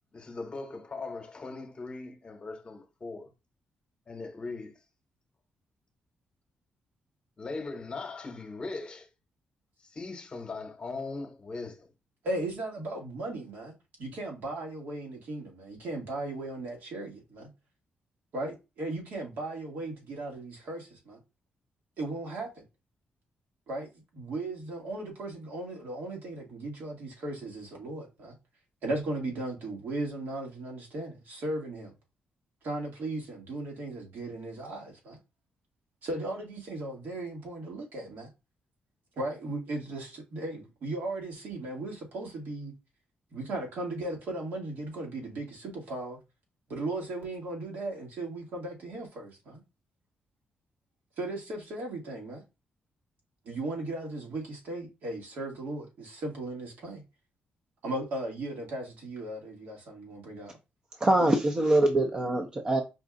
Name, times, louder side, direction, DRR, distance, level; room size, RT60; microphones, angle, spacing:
voice 1, 0.1-3.3 4.1-4.8 7.4-9.1 9.8-11.9, left 3 dB, 30° left, 1.0 m, -39 dB
voice 2, 12.2-13.7 14.0-17.5 18.3-21.2 22.0-22.6 23.7-28.3 28.8-31.9 32.6-35.2 36.0-38.3 39.2-42.7 43.3-46.2 46.7-49.6 51.2-52.4 53.4-57.0 57.8-60.6, right 2 dB, 75° right, 1.8 m, -36 dB
voice 3, 61.0-62.8, right 1 dB, 25° right, 0.6 m, -24 dB
5.0 x 2.4 x 3.7 m
cardioid pair, 140°, 3 cm